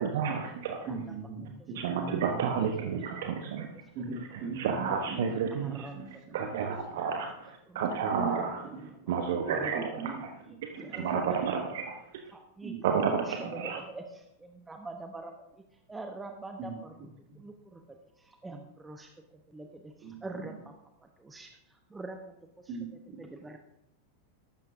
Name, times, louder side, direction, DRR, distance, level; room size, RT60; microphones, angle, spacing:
voice 1, 0.0-0.9 1.7-3.7 4.3-8.6 9.1-10.3 10.6-12.0 12.8-13.8, right 6 dB, 55° right, 4 dB, 1.0 m, -31 dB
voice 2, 0.9-2.9 4.0-6.4 7.0-7.1 8.1-8.4 8.7-8.9 9.7-10.2 10.8-11.3 12.6-13.5 16.6-17.1 20.0-20.6 22.7-23.2, right 4 dB, 40° right, 2 dB, 2.4 m, -40 dB
voice 3, 3.0-3.3 5.5-6.1 7.7-8.0 9.4-9.7 10.8-11.2 12.3-14.0 14.4-15.3 15.9-17.0 17.4-17.8 18.2-19.1 19.5-19.9 20.2-20.7 21.2-21.6 21.9-22.3 23.2-23.6, right 2 dB, 10° right, 4 dB, 0.9 m, -43 dB
14.0 x 12.5 x 2.7 m, 0.84 s
figure-of-eight pair, 90°, 0 cm